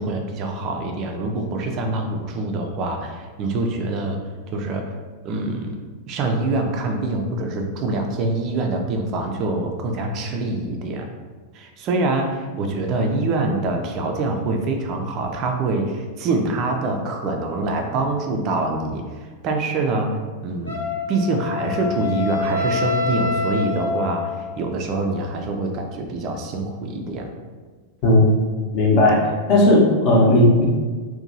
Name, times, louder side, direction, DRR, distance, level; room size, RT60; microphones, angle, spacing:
voice 1, 0.0-4.2 4.5-4.8 5.2-5.8 6.1-11.1 11.5-19.0 19.4-20.1 20.4-27.3, right 2 dB, 40° right, 3 dB, 0.3 m, -25 dB
Wind instrument woodwind instrument, 20.7-24.6, left 4 dB, 85° left, 0.6 m, -26 dB
voice 2, 28.0-28.3 28.7-29.2 29.5-30.6, left 1 dB, 40° left, -3 dB, 0.7 m, -15 dB
2.8 x 2.1 x 2.6 m, 1.4 s
figure-of-eight pair, 90°, 0 cm